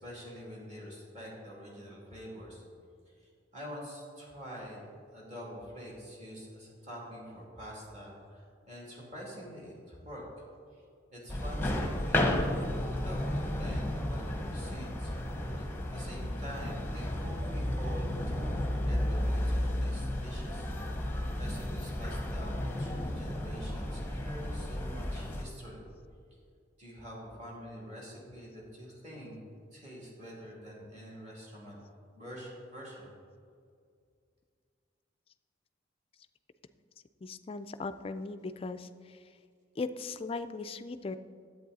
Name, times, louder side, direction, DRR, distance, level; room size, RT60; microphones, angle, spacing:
voice 1, 0.0-2.6 3.5-4.8 5.1-8.2 8.7-10.3 11.1-15.1 15.6-20.7 20.9-21.1 21.4-25.8 26.8-29.4 29.7-31.8 32.1-33.1, equal, 35° right, -4 dB, 2.6 m, -46 dB
sound 1, 11.3-25.4, left 1 dB, 10° left, 0.8 m, -33 dB
voice 2, 37.2-39.2 39.8-41.2, left 3 dB, 30° left, 11 dB, 0.3 m, -38 dB
11.0 x 8.3 x 4.0 m, 2.2 s
head